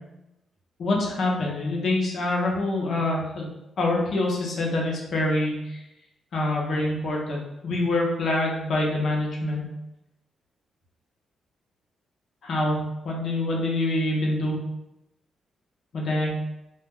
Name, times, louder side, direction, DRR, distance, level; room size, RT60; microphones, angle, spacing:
voice 1, 0.8-3.5 3.8-5.8 6.3-9.7 12.4-12.8 13.0-14.6 15.9-16.4, left 2 dB, 60° left, -2 dB, 0.6 m, -25 dB
2.3 x 2.1 x 3.5 m, 0.89 s
cardioid pair, 130°, 0 cm